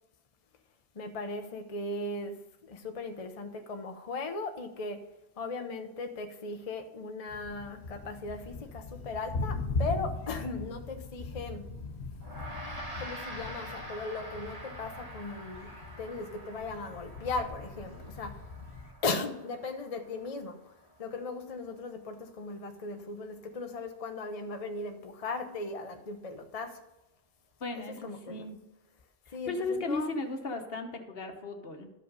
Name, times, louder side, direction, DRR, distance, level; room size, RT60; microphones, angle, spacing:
voice 1, 0.9-5.1 5.4-11.7 13.0-18.4 19.0-20.7 21.0-26.8 27.8-28.5 29.3-30.2, left 3 dB, 40° left, 0.8 m, -38 dB
Thunder, 7.3-18.9, left 3 dB, 85° left, 1.4 m, -40 dB
Gong, 12.2-21.8, right 1 dB, 35° right, 1.7 m, -46 dB
voice 2, 27.6-28.6 29.3-31.9, left 3 dB, 65° left, 1.3 m, -36 dB
12.5 x 5.3 x 5.4 m
omnidirectional pair, 1.1 m